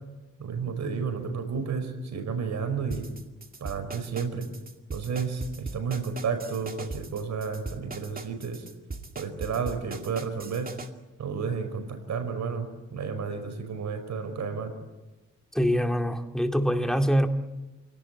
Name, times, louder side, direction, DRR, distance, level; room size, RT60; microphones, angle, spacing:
voice 1, 0.4-3.0 3.6-4.5 4.9-8.7 9.2-10.7 11.2-14.7, right 5 dB, 65° right, 5.3 m, -31 dB
sound 1, 2.9-10.9, right 3 dB, 30° right, 2.4 m, -39 dB
voice 2, 15.5-17.3, equal, ahead, 2.5 m, -24 dB
27.5 x 18.0 x 8.6 m
cardioid pair, 85°, 30 cm